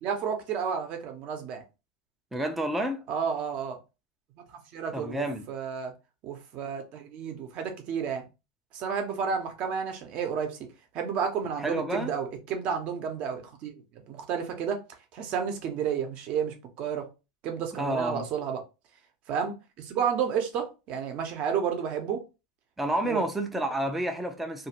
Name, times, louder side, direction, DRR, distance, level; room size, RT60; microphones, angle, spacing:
voice 1, 0.0-1.6 3.1-3.8 4.5-5.9 6.2-8.2 8.7-10.6 10.9-14.8 15.1-17.1 17.4-18.6 19.3-22.2 23.0-23.3, right 7 dB, 45° right, 0.8 m, -31 dB
voice 2, 2.3-3.0 4.9-5.5 11.6-12.1 17.8-18.2 22.8-24.7, right 1 dB, 5° right, 0.5 m, -29 dB
2.6 x 2.4 x 2.9 m
supercardioid pair, 130°, 3 cm